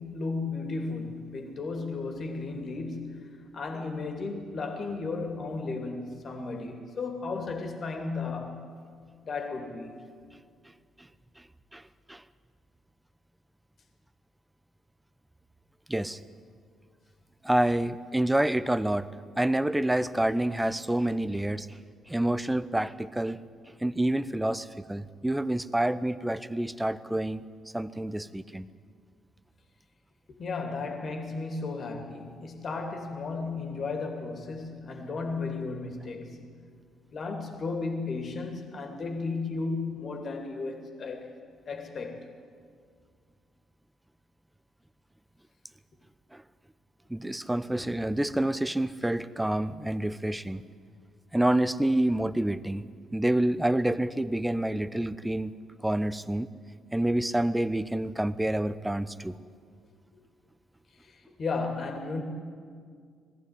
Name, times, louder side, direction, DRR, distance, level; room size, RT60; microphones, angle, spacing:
voice 1, 0.0-8.7 9.2-10.0 30.4-36.4 37.1-41.3 41.7-42.3 60.1-60.2 61.0-62.2, left 3 dB, 50° left, 2.8 m, -34 dB
voice 2, 15.9-16.2 17.4-19.1 19.4-21.8 22.1-23.4 23.8-27.4 27.7-28.7 46.3-46.4 47.1-50.6 51.3-52.8 53.1-55.5 55.8-56.5 56.9-59.4, right 1 dB, 10° right, 0.9 m, -28 dB
20.5 x 14.5 x 9.8 m
hypercardioid pair, 45°, 0 cm